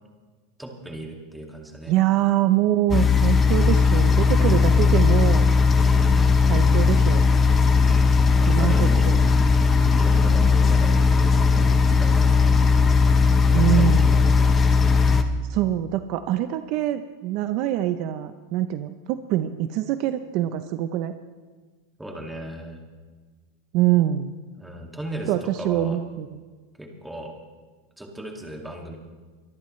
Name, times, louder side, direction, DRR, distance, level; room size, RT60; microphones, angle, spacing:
voice 1, 0.6-1.9 5.8-6.3 7.8-9.1 9.5-12.6 13.4-14.4 22.0-22.8 24.6-26.0 26.8-27.3 28.0-29.0, right 1 dB, 5° right, 0 dB, 2.2 m, -37 dB
voice 2, 1.9-5.5 6.5-7.2 8.5-9.2 13.5-14.1 15.5-21.1 23.7-24.3 25.3-26.4, right 13 dB, 50° right, 10 dB, 0.7 m, -24 dB
sound 1, 2.9-15.2, left 4 dB, 20° left, 0.9 m, -18 dB
23.5 x 14.0 x 3.2 m, 1.4 s
supercardioid pair, 145°, 0 cm